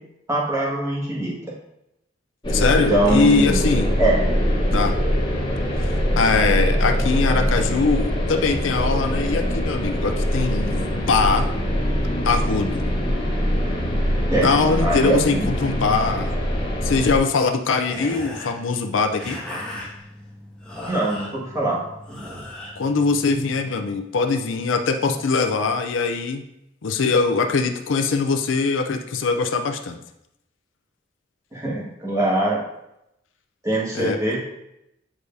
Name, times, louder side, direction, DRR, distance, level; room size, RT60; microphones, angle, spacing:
voice 1, 0.3-1.4 2.9-3.7 4.0-4.2 14.3-14.5 14.8-15.5 20.8-21.8 31.5-32.6 33.6-34.4, right 1 dB, 15° right, -6 dB, 1.8 m, -22 dB
sound 1, 2.4-17.2, equal, 25° left, 1.2 m, -23 dB
voice 2, 2.5-4.0 4.7-5.0 5.8-11.5 12.2-12.8 14.4-16.3 16.8-19.4 22.8-26.4 26.8-30.0 33.9-34.2, left 4 dB, 70° left, 6 dB, 0.5 m, -22 dB
sound 2, 17.9-23.7, left 1 dB, 5° left, 1.5 m, -37 dB
8.9 x 4.8 x 2.7 m, 0.84 s
head